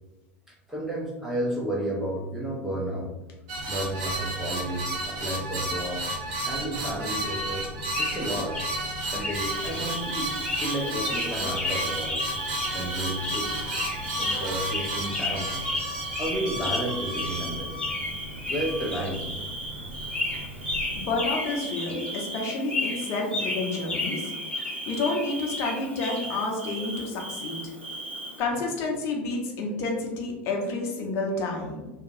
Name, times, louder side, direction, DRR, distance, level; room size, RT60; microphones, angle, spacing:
voice 1, 0.5-3.1 3.7-6.0 6.4-7.7 8.0-8.6 9.1-12.2 12.7-13.7 14.2-15.5 16.1-17.8 18.5-19.3, right 1 dB, 5° right, -4 dB, 0.5 m, -32 dB
sound 1, 3.5-21.1, right 1 dB, 55° right, 0.7 m, -33 dB
sound 2, 7.3-7.7 7.9-8.8 9.0-10.0 10.4-12.8 13.2-17.4 17.8-19.4 20.1-22.2 22.5-26.3, left 2 dB, 15° left, 1.0 m, -33 dB
Bird / Cricket, 9.3-28.4, right 2 dB, 90° right, 0.7 m, -37 dB
voice 2, 21.0-24.3 24.9-27.6 28.4-31.9, left 3 dB, 45° left, 0 dB, 0.7 m, -29 dB
2.7 x 2.3 x 2.5 m, 1.1 s
figure-of-eight pair, 80°, 6 cm